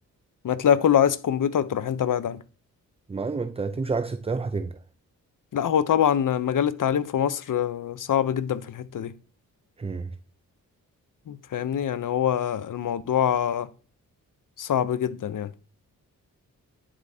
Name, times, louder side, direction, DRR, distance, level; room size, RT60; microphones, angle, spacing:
voice 1, 0.4-2.4 5.5-9.1 11.3-13.7 14.6-15.5, left 9 dB, 60° left, 0.7 m, -24 dB
voice 2, 3.1-4.8 9.8-10.2, right 4 dB, 15° right, 0.4 m, -29 dB
10.0 x 4.8 x 2.7 m
cardioid pair, 55°, 36 cm